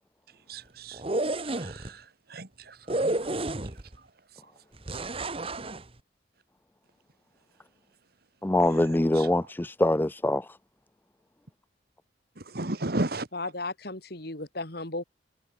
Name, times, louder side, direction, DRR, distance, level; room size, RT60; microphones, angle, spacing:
voice 1, 0.5-1.0 1.6-2.0 2.3-3.1 12.5-13.3, right 2 dB, 55° right, 1.8 m, -33 dB
sound 1, 0.9-1.9 2.9-4.0 4.9-5.8, right 2 dB, 30° right, 1.4 m, -30 dB
voice 2, 8.4-10.5, left 1 dB, 10° left, 0.4 m, -24 dB
voice 3, 13.3-15.0, left 2 dB, 60° left, 3.3 m, -35 dB
head